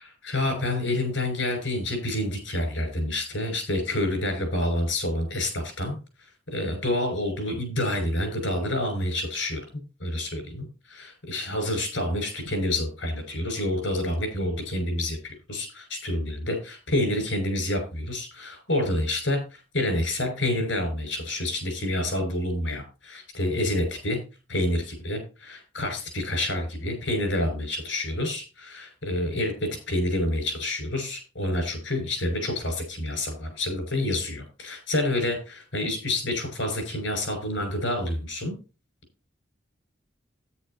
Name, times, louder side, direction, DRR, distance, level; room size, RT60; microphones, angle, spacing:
voice 1, 0.0-6.0 6.5-9.6 10.0-24.2 24.5-29.5 29.9-38.6, left 1 dB, 80° left, 6 dB, 6.2 m, -28 dB
12.5 x 10.0 x 2.8 m, 0.32 s
head